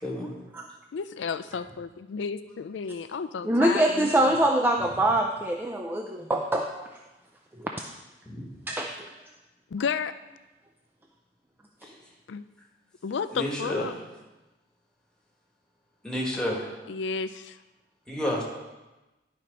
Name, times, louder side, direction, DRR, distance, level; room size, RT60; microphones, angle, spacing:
voice 1, 0.9-4.4 9.7-10.1 12.3-12.4 13.0-14.0 16.9-17.6, left 5 dB, 75° left, 13 dB, 0.4 m, -32 dB
voice 2, 3.4-7.0 7.6-7.7 8.7-8.9, right 1 dB, 10° right, 2 dB, 0.4 m, -24 dB
voice 3, 13.3-13.9 16.0-16.7 18.1-18.4, left 1 dB, 5° left, -3 dB, 1.6 m, -30 dB
11.0 x 4.3 x 5.2 m, 1.1 s
head